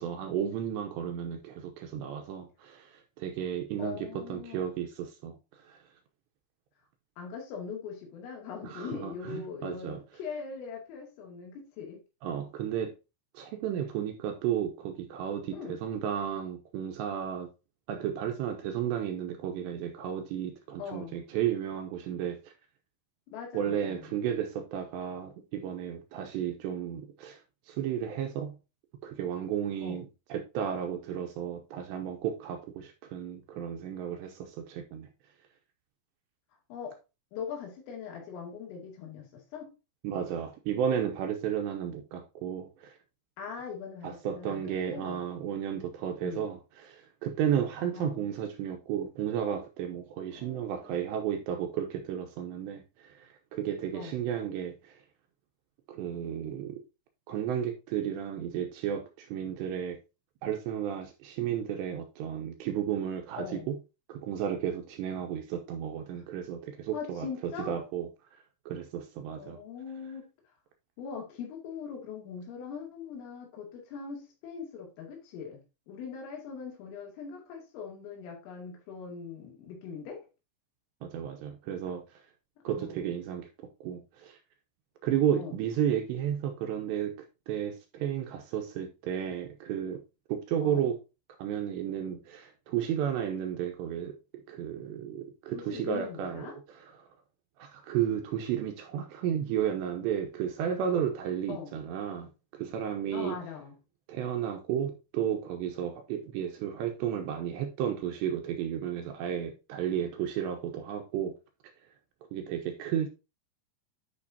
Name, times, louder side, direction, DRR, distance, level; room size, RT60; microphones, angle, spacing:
voice 1, 0.0-5.8 8.6-10.0 12.2-13.0 13.3-17.5 17.9-22.5 23.5-27.4 27.7-28.6 29.0-30.0 30.3-35.1 40.0-42.9 44.0-55.0 55.9-56.8 57.3-60.0 60.4-63.8 64.1-67.3 67.7-68.1 68.7-69.6 81.0-82.2 82.6-83.5 83.8-84.4 85.0-87.2 87.5-90.0 90.3-91.0 91.4-94.2 94.5-96.5 97.0-97.1 97.6-102.3 102.5-103.4 104.1-111.3 112.3-113.1, right 9 dB, 80° right, 2.7 m, -33 dB
voice 2, 3.8-4.8 7.2-12.0 15.5-15.8 20.8-21.2 23.3-24.1 29.8-30.0 36.7-36.9 37.3-39.7 43.4-45.2 46.2-46.5 47.9-48.3 50.3-51.2 53.9-54.2 63.4-63.7 66.9-67.8 69.4-70.3 71.0-80.2 82.7-83.2 85.4-85.5 90.6-90.9 95.5-96.6 101.5-101.7 103.1-103.8, left 6 dB, 90° left, 5.0 m, -41 dB
11.0 x 5.3 x 2.8 m
omnidirectional pair, 5.7 m